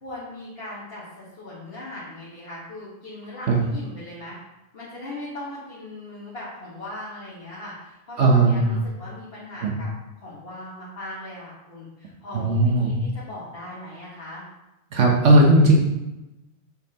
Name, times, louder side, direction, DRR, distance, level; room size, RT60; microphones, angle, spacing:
voice 1, 0.0-4.4 4.7-9.9 10.2-14.4, left 1 dB, 55° left, -8 dB, 1.7 m, -39 dB
voice 2, 8.2-8.8 9.6-9.7 12.3-12.9 14.9-15.8, right 2 dB, 80° right, 0 dB, 1.3 m, -17 dB
6.6 x 5.7 x 2.9 m, 0.98 s
omnidirectional pair, 1.2 m